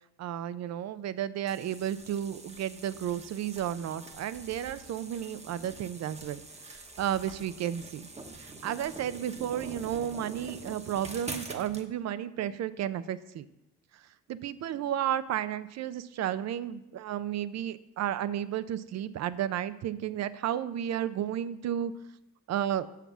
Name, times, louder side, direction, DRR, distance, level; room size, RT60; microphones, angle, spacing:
voice 1, 0.2-13.5 13.9-14.0 14.3-21.9 22.5-22.9, right 10 dB, 60° right, 15 dB, 0.5 m, -33 dB
sound 1, 1.5-11.9, right 2 dB, 20° right, 1.0 m, -45 dB
6.9 x 5.8 x 6.1 m, 0.88 s
cardioid pair, 90°, 30 cm